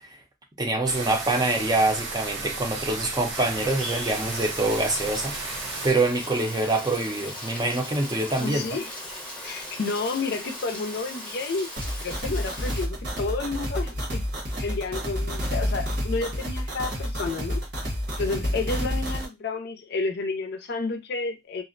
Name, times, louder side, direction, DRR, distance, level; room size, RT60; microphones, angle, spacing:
voice 1, 0.6-5.4 5.8-8.6, right 2 dB, 20° right, 0.5 m, -25 dB
sound 1, 0.8-5.9, right 3 dB, 75° right, 0.7 m, -34 dB
Rain, 3.3-12.8, left 1 dB, 5° left, 0.8 m, -38 dB
voice 2, 8.3-8.9 9.4-11.7 12.0-14.2 14.6-17.6 18.2-21.6, left 3 dB, 60° left, 0.5 m, -30 dB
sound 2, 11.8-19.3, equal, 60° right, 1.0 m, -29 dB
2.4 x 2.0 x 2.5 m
head